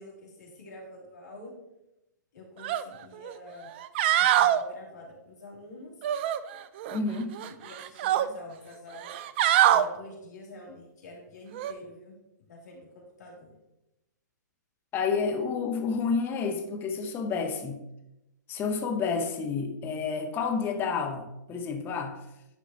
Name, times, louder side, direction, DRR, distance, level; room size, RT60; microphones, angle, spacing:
voice 1, 0.0-1.5 2.3-3.7 4.2-5.9 7.2-9.1 9.7-12.1 12.4-13.5, left 1 dB, 60° left, -2 dB, 2.6 m, -47 dB
sound 1, 2.6-2.8 3.2-3.3 3.8-4.6 6.0-7.0 7.3-8.3 9.0-9.8 11.5-11.7, right 12 dB, 35° right, 0.4 m, -24 dB
voice 2, 6.9-7.3 14.9-17.8 18.5-22.2, left 5 dB, 20° left, 4 dB, 0.9 m, -30 dB
10.5 x 4.6 x 2.8 m, 0.90 s
figure-of-eight pair, 125°, 10 cm